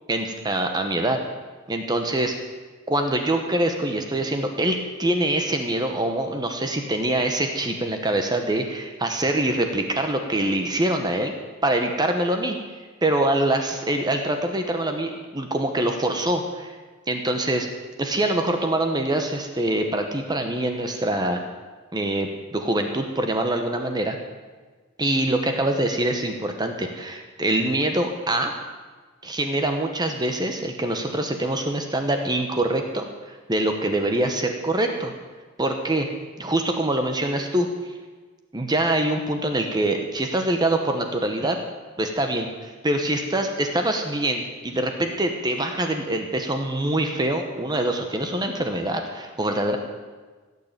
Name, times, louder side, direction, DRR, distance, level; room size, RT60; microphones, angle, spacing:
voice 1, 0.1-1.2 1.7-2.4 2.9-11.3 11.6-12.6 13.0-16.7 17.1-17.7 18.0-21.4 21.9-24.2 25.0-28.5 29.2-35.1 35.6-36.1 36.4-37.9 38.5-41.6 42.0-49.8, right 1 dB, 20° right, 5 dB, 1.0 m, -24 dB
17.0 x 6.7 x 8.9 m, 1.4 s
head